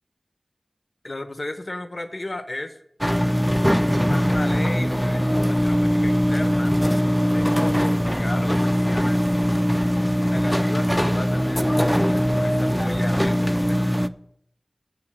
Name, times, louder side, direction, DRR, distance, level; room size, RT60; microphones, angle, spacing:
voice 1, 1.0-2.8 4.0-6.8 7.2-9.3 10.2-11.7 12.1-13.9, left 2 dB, 55° left, 9 dB, 1.0 m, -35 dB
sound 1, 3.0-14.1, equal, 5° left, 0.4 m, -21 dB
7.5 x 6.7 x 8.0 m, 0.72 s
wide cardioid pair, 60°, 0 cm